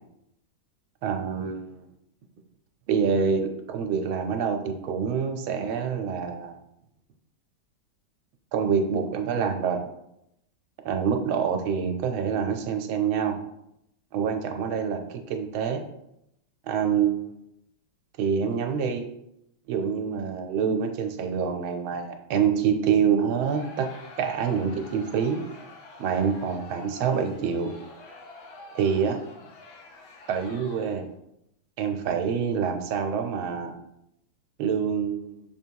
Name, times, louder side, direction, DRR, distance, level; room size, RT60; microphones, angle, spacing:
voice 1, 1.0-1.9 2.9-6.5 8.5-9.8 10.8-13.4 14.1-15.8 16.7-17.4 18.2-19.0 19.7-23.9 24.2-25.4 26.0-27.7 28.7-29.2 30.3-31.1 31.8-33.7 34.6-35.4, right 7 dB, 80° right, 5 dB, 1.5 m, -26 dB
Crowd, 23.4-31.1, left 3 dB, 75° left, 1.7 m, -47 dB
6.8 x 3.0 x 4.6 m, 0.81 s
omnidirectional pair, 2.2 m